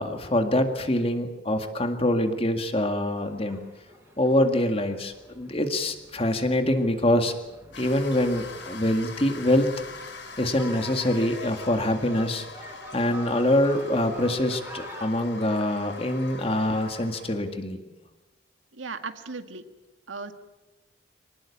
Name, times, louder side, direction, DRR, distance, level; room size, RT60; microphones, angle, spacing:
voice 1, 0.0-3.6 4.2-7.3 7.8-9.7 10.4-12.5 12.9-17.8, left 1 dB, 30° left, 7 dB, 2.0 m, -25 dB
sound 1, 3.1-15.1, equal, 10° right, 4.7 m, -46 dB
sound 2, 7.7-17.4, left 4 dB, 65° left, 3.9 m, -43 dB
voice 2, 18.7-19.6 20.1-20.3, right 4 dB, 80° right, 8 dB, 1.9 m, -36 dB
25.0 x 19.0 x 8.6 m, 1.1 s
head